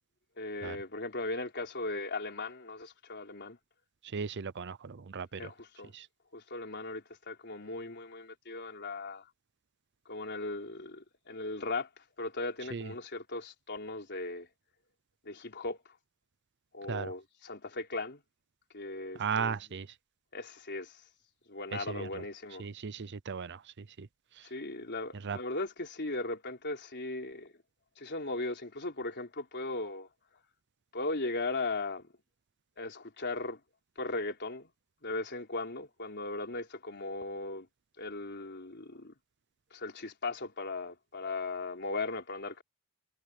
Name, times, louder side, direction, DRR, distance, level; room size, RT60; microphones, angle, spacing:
voice 1, 0.4-3.6 5.3-5.9 6.3-9.2 10.1-11.9 12.2-14.5 15.3-15.8 16.7-18.2 18.7-19.6 20.3-20.9 21.5-22.7 24.4-27.5 28.0-30.1 30.9-32.1 32.8-33.6 34.0-34.7 35.0-37.7 38.0-39.1 39.7-42.6, left 2 dB, 50° left, 4.0 m, -38 dB
voice 2, 4.1-5.5 5.9-6.1 12.7-12.9 16.9-17.1 19.2-19.9 21.9-22.1 22.6-23.6 24.0-24.1 25.2-25.4, right 6 dB, 55° right, 0.6 m, -36 dB
head